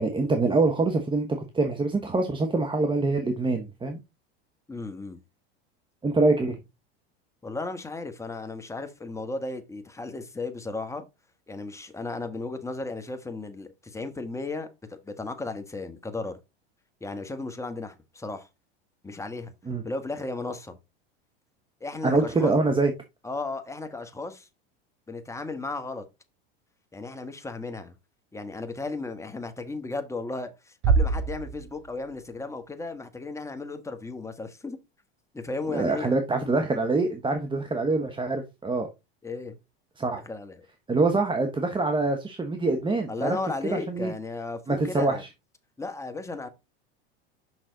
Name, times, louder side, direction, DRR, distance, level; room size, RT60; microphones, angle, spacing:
voice 1, 0.0-4.0 6.0-6.6 19.7-19.8 22.0-22.9 35.7-38.9 40.0-40.2 40.9-43.4 43.7-44.1 44.7-45.2, right 3 dB, 15° right, 1.1 m, -25 dB
voice 2, 4.7-5.2 6.4-6.5 7.4-11.0 11.5-16.4 17.0-18.5 19.0-19.5 19.8-20.8 21.8-22.5 23.2-24.5 25.1-26.0 26.9-27.9 28.3-34.8 35.3-36.1 39.2-39.6 40.2-40.6 43.1-45.2 45.8-46.5, left 3 dB, 10° left, 1.4 m, -35 dB
Bass drum, 30.8-32.5, right 5 dB, 60° right, 3.3 m, -26 dB
6.4 x 6.0 x 3.9 m
hypercardioid pair, 100°, 31 cm